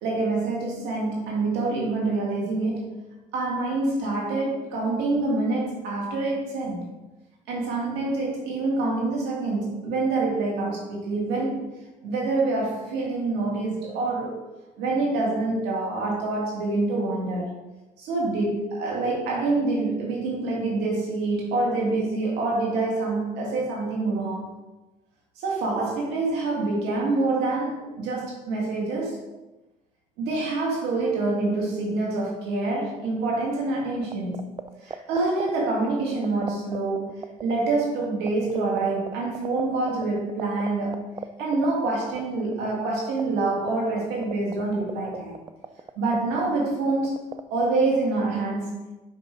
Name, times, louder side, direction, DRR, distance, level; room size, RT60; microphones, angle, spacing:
voice 1, 0.0-2.9 3.3-6.9 7.5-11.7 12.0-14.4 14.8-17.5 18.0-24.5 25.4-29.2 30.2-34.4 34.8-41.0 41.4-45.3 46.0-47.2 47.5-48.8, right 3 dB, 90° right, -3 dB, 2.1 m, -26 dB
sound 1, 34.0-47.4, right 6 dB, 25° right, 0.5 m, -34 dB
6.9 x 5.6 x 4.6 m, 1.1 s
cardioid pair, 110°, 17 cm